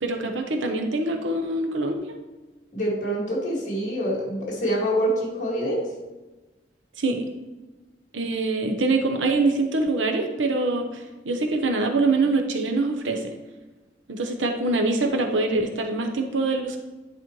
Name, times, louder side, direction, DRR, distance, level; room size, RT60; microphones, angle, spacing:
voice 1, 0.0-2.1 7.0-7.2 8.1-13.3 14.1-16.8, right 3 dB, 80° right, 4 dB, 0.8 m, -24 dB
voice 2, 2.7-5.8, right 1 dB, 40° left, -6 dB, 2.1 m, -25 dB
10.0 x 4.3 x 3.1 m, 1.2 s
head